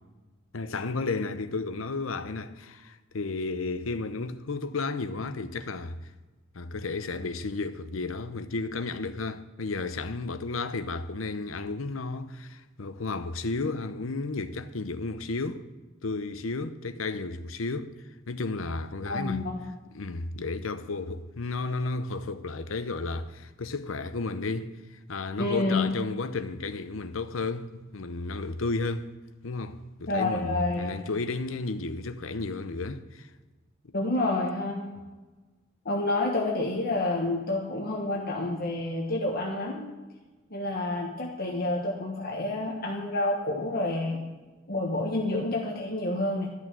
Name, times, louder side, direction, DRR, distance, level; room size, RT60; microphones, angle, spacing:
voice 1, 0.5-6.0 6.5-15.7 16.0-17.9 18.3-19.4 19.9-24.7 25.1-29.1 29.4-33.3, left 3 dB, 85° left, 0.8 m, -33 dB
voice 2, 19.0-19.5 25.4-25.9 30.1-30.9 33.9-35.0 35.8-39.8 40.5-44.2 44.7-46.5, left 2 dB, 50° left, 1.4 m, -29 dB
13.0 x 6.3 x 8.9 m
head